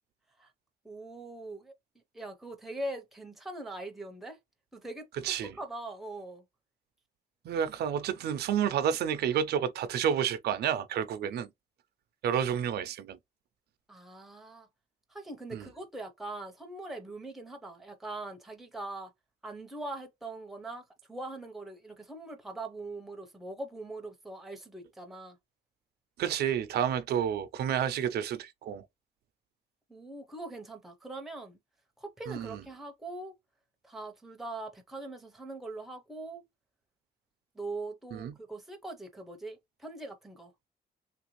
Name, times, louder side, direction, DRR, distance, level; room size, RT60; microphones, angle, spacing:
voice 1, 0.8-1.7 2.1-4.4 4.7-5.1 5.6-6.4 13.9-14.7 15.1-19.1 19.4-25.4 29.9-31.6 32.0-33.4 33.8-36.5 37.5-40.5, right 2 dB, ahead, 0.5 m, -42 dB
voice 2, 7.4-11.5 12.2-13.2 15.5-15.6 26.2-28.8 32.3-32.6 38.1-38.3, right 9 dB, 75° right, 0.4 m, -30 dB
3.2 x 2.5 x 3.0 m
wide cardioid pair, 180°, 17 cm